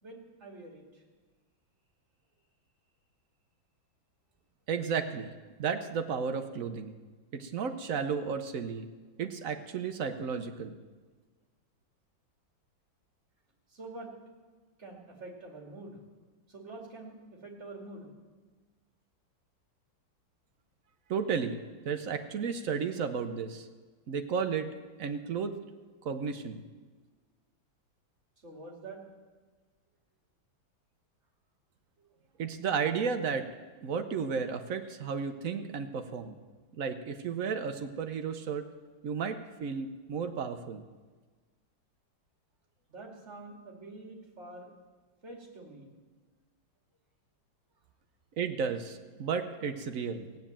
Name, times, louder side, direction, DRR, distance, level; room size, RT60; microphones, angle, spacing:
voice 1, 0.0-1.0 13.7-14.1 14.8-16.0 16.5-18.1 28.4-29.0 32.0-32.1 42.9-44.7 45.2-45.9, right 2 dB, 35° right, 0 dB, 2.9 m, -46 dB
voice 2, 4.7-5.3 5.6-6.9 7.3-8.9 9.2-10.7 21.1-23.7 24.1-24.7 25.0-25.5 26.0-26.6 32.4-33.5 33.8-36.3 36.8-38.7 39.0-40.8 48.4-50.3, right 6 dB, 60° right, 8 dB, 0.9 m, -33 dB
16.0 x 9.2 x 7.4 m, 1.4 s
omnidirectional pair, 2.2 m